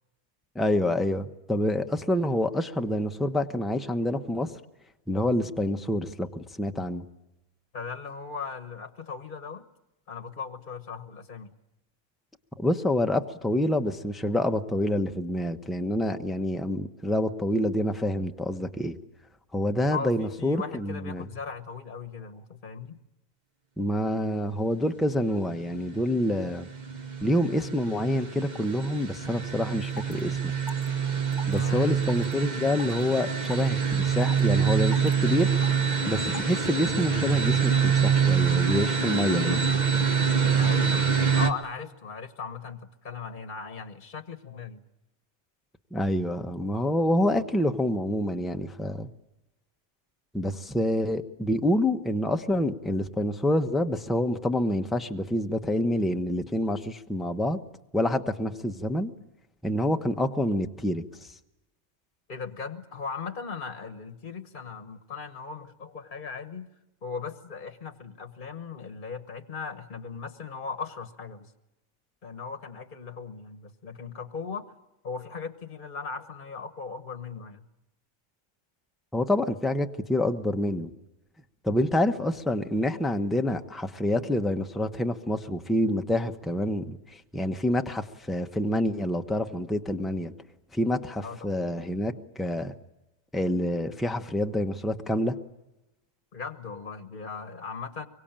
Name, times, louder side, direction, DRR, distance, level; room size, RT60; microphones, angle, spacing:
voice 1, 0.5-4.5 5.1-7.0 12.6-19.0 19.5-21.3 23.8-26.7 27.2-30.5 31.5-35.5 36.1-39.6 45.9-49.1 50.3-57.6 57.9-59.1 59.6-61.0 79.1-80.9 81.6-90.3 90.7-92.7 93.3-95.3, left 1 dB, ahead, 6 dB, 0.9 m, -27 dB
voice 2, 7.7-9.6 10.1-11.5 19.9-23.0 31.5-32.0 40.6-44.8 62.3-66.7 67.0-71.5 72.2-74.7 75.0-77.6 91.2-91.5 96.3-98.1, left 5 dB, 45° left, 10 dB, 1.3 m, -38 dB
sound 1, 26.0-41.5, right 6 dB, 40° right, 1.3 m, -26 dB
sound 2, 29.5-29.6 29.9-30.2 30.7-30.9 31.3-31.6 32.0-32.3 32.8-33.0 33.4-33.7 34.2-34.5 34.9-35.1 35.6-35.8 36.3-36.5, left 1 dB, 20° left, 1.2 m, -40 dB
25.0 x 23.5 x 8.9 m, 0.98 s
omnidirectional pair, 1.2 m